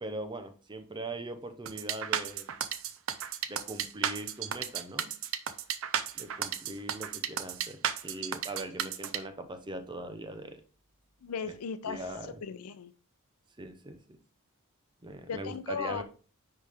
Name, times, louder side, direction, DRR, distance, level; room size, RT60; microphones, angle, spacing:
voice 1, 0.0-2.5 3.5-5.1 6.1-10.6 11.9-12.4 13.6-14.2 15.0-16.0, right 2 dB, 20° right, 0.8 m, -41 dB
sound 1, 1.7-9.2, right 9 dB, 65° right, 0.6 m, -33 dB
voice 2, 11.2-12.0 12.4-12.9 15.3-16.0, left 6 dB, 85° left, 0.5 m, -36 dB
9.9 x 3.3 x 3.5 m
head